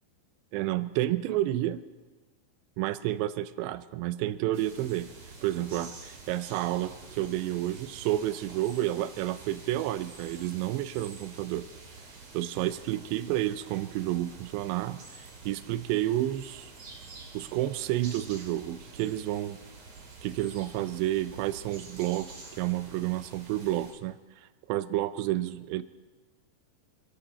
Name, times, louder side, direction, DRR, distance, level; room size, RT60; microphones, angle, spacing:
voice 1, 0.5-1.8 2.8-5.1 5.4-11.7 12.3-16.7 17.3-19.6 20.2-25.8, right 14 dB, 80° right, 13 dB, 2.6 m, -30 dB
sound 1, 4.5-23.9, right 3 dB, 40° right, 3.1 m, -48 dB
28.0 x 11.5 x 4.2 m, 1.3 s
omnidirectional pair, 5.4 m